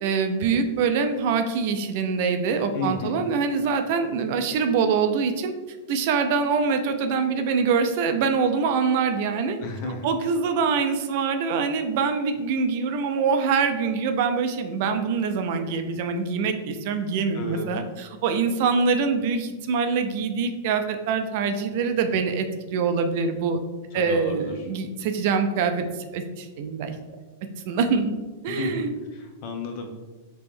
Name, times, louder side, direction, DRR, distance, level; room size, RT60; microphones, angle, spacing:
voice 1, 0.0-5.5 5.9-9.6 10.0-23.6 23.9-26.9 27.7-28.1 28.4-28.9, right 5 dB, 55° right, 7 dB, 0.4 m, -24 dB
voice 2, 2.7-3.3 9.6-10.1 17.3-17.7 23.9-24.7 28.5-29.9, left 3 dB, 50° left, 3 dB, 0.7 m, -33 dB
3.3 x 2.9 x 3.4 m, 1.2 s
hypercardioid pair, 130°, 0 cm